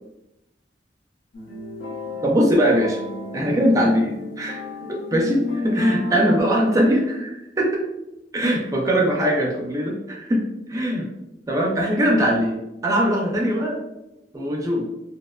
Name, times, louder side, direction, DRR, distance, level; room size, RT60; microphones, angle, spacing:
sound 1, 1.3-6.4, left 3 dB, 70° left, 0.8 m, -32 dB
voice 1, 2.2-3.0 3.3-4.6 4.9-7.8 8.3-10.4 10.7-11.0 11.5-12.6 12.8-13.8 14.3-14.9, equal, 20° right, -1 dB, 0.4 m, -21 dB
2.8 x 2.1 x 2.2 m, 0.91 s
head